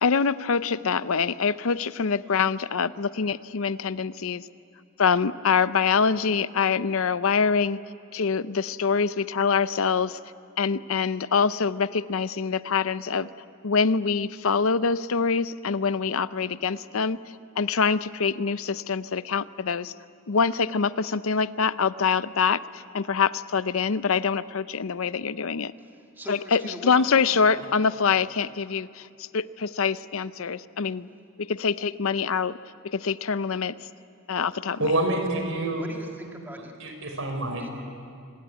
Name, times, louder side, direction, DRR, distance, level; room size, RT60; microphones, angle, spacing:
voice 1, 0.0-4.5 5.0-7.8 8.1-10.2 10.6-13.3 13.6-17.2 17.6-19.9 20.3-25.7 26.3-31.1 31.4-32.6 32.8-33.7 34.3-34.9, left 5 dB, 70° left, 15 dB, 0.6 m, -25 dB
voice 2, 25.9-27.1 35.7-36.7 37.6-37.7, equal, 10° right, 1 dB, 1.8 m, -42 dB
voice 3, 34.8-35.9 36.8-37.7, right 1 dB, 65° right, 4 dB, 4.7 m, -27 dB
26.5 x 20.5 x 9.2 m, 2.4 s
head